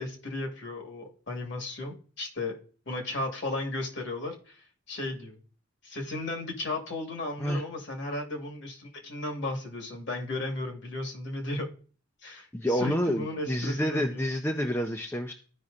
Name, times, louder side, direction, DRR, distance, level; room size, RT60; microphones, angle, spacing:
voice 1, 0.0-2.6 2.9-5.4 5.8-11.7 12.2-14.2, left 2 dB, 55° left, 3 dB, 1.5 m, -35 dB
voice 2, 12.5-15.3, equal, 10° left, 5 dB, 0.4 m, -28 dB
13.0 x 5.4 x 2.4 m, 0.40 s
head